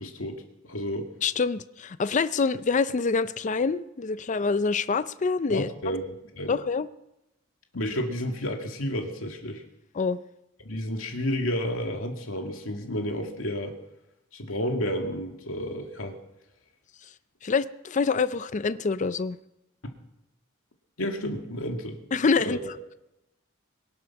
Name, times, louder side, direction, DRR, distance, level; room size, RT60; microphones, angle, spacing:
voice 1, 0.0-1.1 5.5-6.6 7.7-9.6 10.6-13.8 14.3-16.2 21.0-22.0 22.4-22.6, equal, 85° left, 2.1 m, -31 dB
voice 2, 1.2-5.7 6.5-6.9 9.9-10.2 17.4-19.4 22.1-22.6, left 4 dB, 35° left, 0.5 m, -26 dB
23.0 x 7.8 x 5.9 m
head